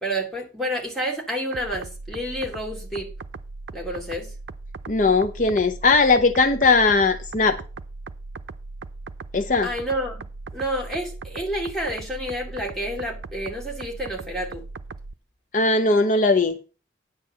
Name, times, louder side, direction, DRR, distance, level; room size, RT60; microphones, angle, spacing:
voice 1, 0.0-3.1 3.7-4.3 9.6-10.2 10.5-14.6, equal, ahead, 2.4 m, -29 dB
sound 1, 1.5-15.2, right 3 dB, 80° right, 0.6 m, -38 dB
voice 2, 4.9-7.6 9.3-9.7 15.5-16.6, left 3 dB, 45° left, 0.6 m, -19 dB
9.7 x 4.5 x 7.2 m
head